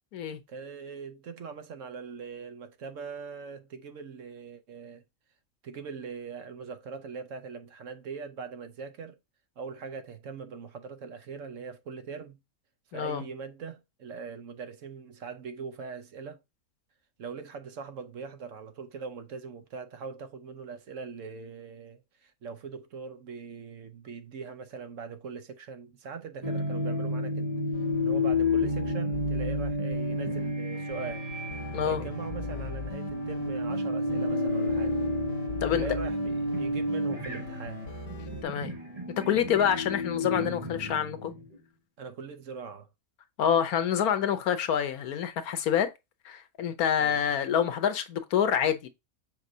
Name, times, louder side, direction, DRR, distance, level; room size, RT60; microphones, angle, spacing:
voice 1, 0.5-5.0 5.6-9.2 9.6-12.4 12.9-16.4 17.2-27.5 28.0-31.4 31.8-35.0 35.7-37.8 42.0-42.9 47.0-47.2, right 5 dB, 65° right, 1.2 m, -41 dB
voice 2, 12.9-13.2 31.7-32.1 35.6-35.8 38.4-38.8 39.3-41.3 43.4-45.9 46.2-48.9, left 9 dB, 85° left, 1.3 m, -27 dB
sound 1, 26.4-41.6, left 1 dB, 25° right, 1.4 m, -31 dB
sound 2, 27.7-30.5 30.9-38.4, left 3 dB, 50° left, 1.3 m, -40 dB
sound 3, 30.7-38.2, left 3 dB, 5° right, 2.7 m, -52 dB
7.2 x 4.8 x 2.7 m
omnidirectional pair, 1.5 m